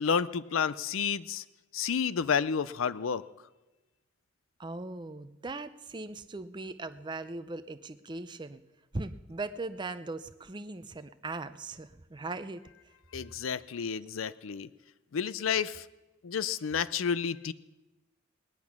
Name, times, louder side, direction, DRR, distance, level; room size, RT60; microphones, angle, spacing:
voice 1, 0.0-1.4 1.7-3.2 13.1-14.7 15.1-15.8 16.2-17.5, left 6 dB, 85° left, 17 dB, 0.5 m, -30 dB
voice 2, 4.6-8.6 8.9-12.6, right 3 dB, 25° right, 11 dB, 0.5 m, -39 dB
19.0 x 10.5 x 5.9 m, 1.1 s
head